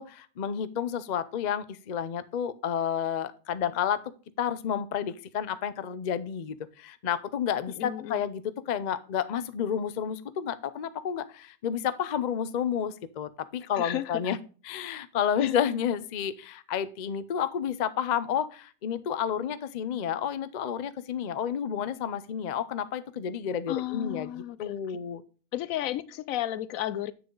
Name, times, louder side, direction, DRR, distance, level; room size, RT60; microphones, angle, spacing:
voice 1, 0.0-4.0 4.4-14.4 14.6-25.2, left 8 dB, 55° left, 0.5 m, -31 dB
voice 2, 7.8-8.2 13.8-14.4 15.4-15.8 23.7-24.8 25.5-27.1, left 13 dB, 75° left, 1.0 m, -33 dB
7.9 x 6.7 x 3.8 m
omnidirectional pair, 1.5 m